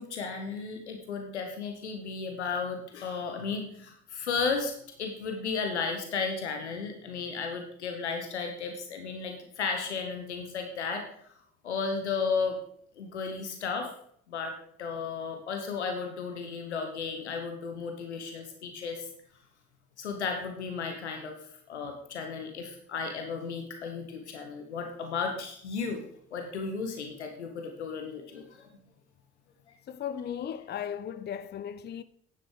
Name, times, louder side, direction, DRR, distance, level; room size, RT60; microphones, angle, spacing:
voice 1, 0.0-4.7 5.0-11.0 11.6-12.6 13.0-13.9 14.3-14.5 14.8-19.1 20.0-21.4 21.7-26.0 26.3-28.7, left 5 dB, 80° left, 1.1 m, -34 dB
voice 2, 29.9-32.0, left 9 dB, 30° left, 0.5 m, -36 dB
10.0 x 7.1 x 4.8 m
figure-of-eight pair, 45°, 33 cm